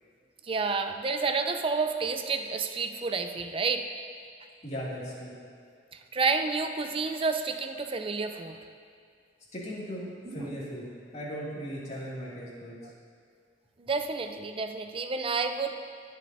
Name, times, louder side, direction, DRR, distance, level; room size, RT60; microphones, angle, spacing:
voice 1, 0.4-3.8 6.1-8.6 10.3-10.6 13.8-15.8, right 4 dB, 30° right, 7 dB, 0.5 m, -30 dB
voice 2, 4.6-5.3 9.5-10.9 11.1-12.8, equal, 40° left, -7 dB, 2.3 m, -37 dB
19.0 x 6.6 x 2.6 m, 2.2 s
head